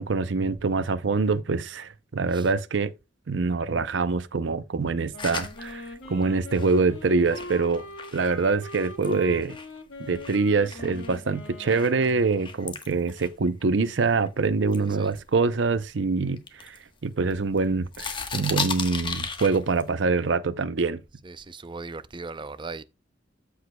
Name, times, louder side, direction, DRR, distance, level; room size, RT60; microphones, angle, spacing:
voice 1, 0.0-2.9 3.3-7.8 8.1-9.6 10.1-16.8 17.0-21.0, right 4 dB, 70° right, 0.6 m, -25 dB
Wind instrument woodwind instrument, 5.1-12.7, left 1 dB, 85° left, 1.7 m, -41 dB
sound 1, 5.2-9.8 10.2-14.3 14.7-15.9 16.4-17.6 17.9-19.9, left 5 dB, 25° left, 1.2 m, -37 dB
voice 2, 21.2-22.8, right 3 dB, 25° right, 0.5 m, -38 dB
14.0 x 4.8 x 2.2 m
head